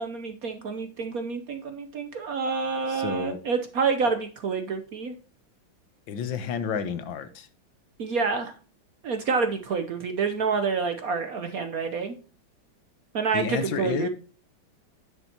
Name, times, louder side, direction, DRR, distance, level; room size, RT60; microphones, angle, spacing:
voice 1, 0.0-5.1 8.0-8.5 9.0-12.1 13.1-14.1, right 5 dB, 60° right, 8 dB, 1.0 m, -28 dB
voice 2, 2.9-3.4 6.1-7.5 13.3-14.1, left 7 dB, 75° left, 11 dB, 1.6 m, -30 dB
9.8 x 7.2 x 2.8 m, 0.38 s
omnidirectional pair, 2.2 m